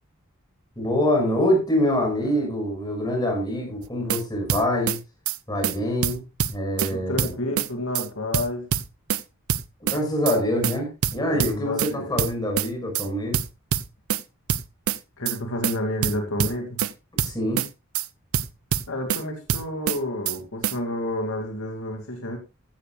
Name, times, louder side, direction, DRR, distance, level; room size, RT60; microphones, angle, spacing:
voice 1, 0.8-5.0 5.5-6.2 6.5-7.3 9.8-13.4 17.2-17.6, left 1 dB, 20° left, 1 dB, 6.2 m, -25 dB
sound 1, 3.8-4.2 4.5-5.0 5.3-5.4 5.6-5.8 6.0-6.9 7.2-7.7 7.9-8.1 8.3-9.2 9.5-10.0 10.3-10.4 10.6-10.8 11.0-11.9 12.2-12.7 12.9-13.1 13.3-14.2 14.5-15.0 15.3-15.4 15.6-15.8 16.0-16.9 17.2-17.7 17.9-18.1 18.3-19.2 19.5-20.0 20.3-20.4 20.6-20.8, right 8 dB, 75° right, 0.7 m, -25 dB
voice 2, 6.9-8.7 11.3-12.2 15.2-16.8 18.9-22.4, left 1 dB, 70° left, 3 dB, 2.7 m, -30 dB
15.5 x 13.5 x 2.5 m, 0.27 s
head